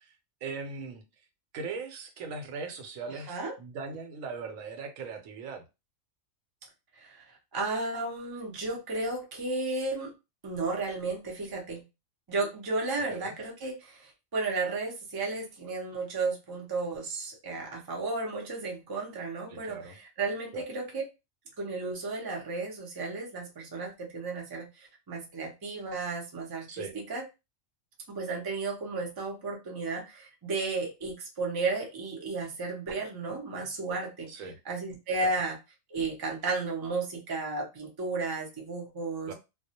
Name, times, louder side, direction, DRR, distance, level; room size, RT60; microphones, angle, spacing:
voice 1, 0.4-1.0 1.5-5.6 13.1-13.3 19.5-19.9 20.5-20.6 26.7-27.0 34.3-34.6 35.2-35.3 39.3-39.4, right 4 dB, 80° right, 1.0 m, -39 dB
voice 2, 7.5-10.1 10.4-11.8 12.3-21.0 21.6-27.2 28.1-34.3 34.6-35.6 35.9-39.3, right 3 dB, 35° right, 0.4 m, -33 dB
2.3 x 2.0 x 2.7 m
omnidirectional pair, 1.4 m